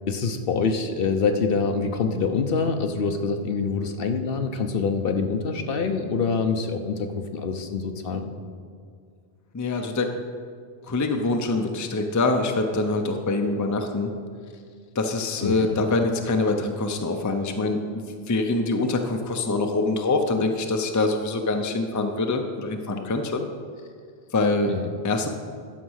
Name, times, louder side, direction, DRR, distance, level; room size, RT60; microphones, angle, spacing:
voice 1, 0.1-8.3 15.4-15.8 24.7-24.9, left 5 dB, 65° left, 6 dB, 0.9 m, -25 dB
voice 2, 9.5-10.1 10.9-14.1 14.9-23.4 24.3-24.7 25.0-25.3, left 3 dB, 20° left, 5 dB, 0.5 m, -24 dB
11.5 x 5.1 x 6.3 m, 2.1 s
omnidirectional pair, 1.1 m